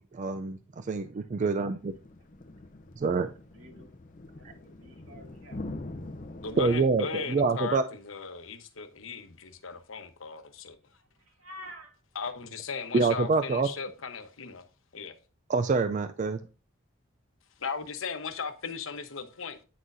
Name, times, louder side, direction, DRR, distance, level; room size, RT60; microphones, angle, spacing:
voice 1, 0.0-1.9 3.0-3.3 6.6-7.8 12.9-13.7 15.5-16.4, right 4 dB, 35° right, 0.3 m, -26 dB
sound 1, 1.8-6.8, left 2 dB, 40° left, 0.7 m, -43 dB
voice 2, 3.5-3.9 4.2-5.8 11.2-11.9, equal, 85° right, 2.2 m, -49 dB
voice 3, 6.4-10.8 12.1-14.6 14.9-15.1 17.6-19.6, left 5 dB, 75° left, 1.0 m, -37 dB
9.3 x 6.2 x 2.6 m
head